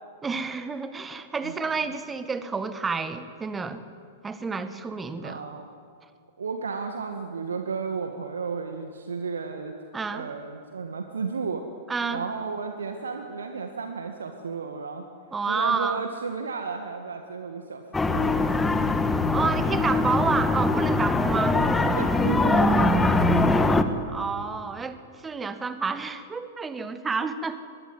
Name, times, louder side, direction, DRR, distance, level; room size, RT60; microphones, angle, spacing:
voice 1, 0.2-3.8 4.2-5.4 9.9-10.3 11.9-12.2 15.3-16.0 19.3-21.6 24.1-27.6, right 4 dB, 15° right, 11 dB, 1.7 m, -29 dB
voice 2, 5.2-5.7 6.4-9.7 10.1-11.6 12.1-15.1 15.5-17.8 18.1-18.9 21.9-23.5, right 5 dB, 70° right, 5 dB, 1.9 m, -33 dB
sound 1, 17.9-23.8, left 2 dB, 10° left, 1.6 m, -22 dB
24.5 x 21.0 x 9.5 m, 2.3 s
figure-of-eight pair, 100°, 0 cm